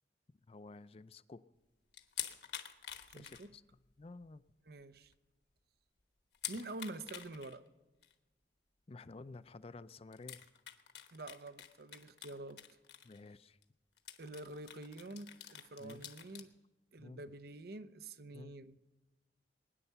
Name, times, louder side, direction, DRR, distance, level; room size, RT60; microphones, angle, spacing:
voice 1, 0.5-1.4 3.1-3.6 4.0-4.4 8.9-10.5 13.0-13.6 15.8-16.1 17.0-17.2 18.3-18.6, left 3 dB, 35° left, 14 dB, 0.4 m, -52 dB
sound 1, 1.9-3.9 4.2-4.3 4.8-4.9 5.1-5.2 6.3-7.6 8.0-8.1 9.5-9.6 10.1-13.3 13.6-13.7 14.0-16.4, left 10 dB, 65° left, 1.2 m, -47 dB
voice 2, 3.1-3.5 4.7-5.1 6.5-7.6 11.1-12.6 14.2-16.5 16.9-18.8, right 2 dB, 60° right, 13 dB, 0.7 m, -47 dB
21.0 x 10.0 x 6.8 m, 1.1 s
head